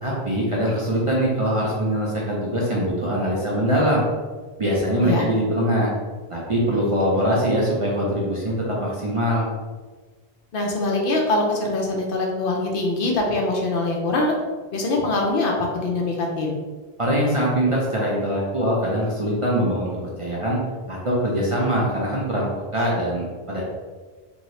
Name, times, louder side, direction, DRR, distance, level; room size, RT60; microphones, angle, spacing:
voice 1, 0.0-4.0 4.6-5.9 6.3-8.5 8.8-9.5 17.0-19.9 20.2-20.6 20.9-23.6, equal, 40° right, -5 dB, 0.5 m, -22 dB
voice 2, 10.5-14.4 14.7-16.6, left 2 dB, 65° left, 0 dB, 0.7 m, -23 dB
2.7 x 2.6 x 3.1 m, 1.4 s
omnidirectional pair, 1.0 m